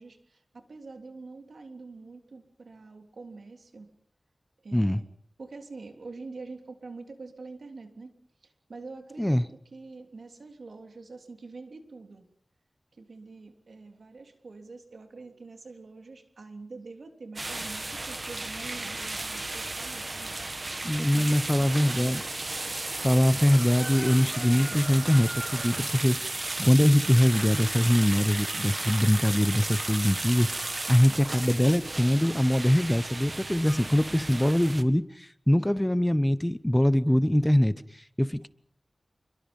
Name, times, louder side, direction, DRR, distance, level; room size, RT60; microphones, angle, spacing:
voice 1, 0.0-3.9 4.6-5.0 5.4-8.1 8.4-9.4 9.7-12.3 12.9-20.4 20.9-22.1, right 3 dB, 90° right, 3.3 m, -45 dB
sound 1, 17.4-34.8, right 2 dB, 40° right, 1.6 m, -34 dB
voice 2, 20.8-22.2 23.0-30.5 30.9-38.5, equal, 10° left, 0.9 m, -23 dB
29.0 x 22.5 x 5.5 m
wide cardioid pair, 80°, 0 cm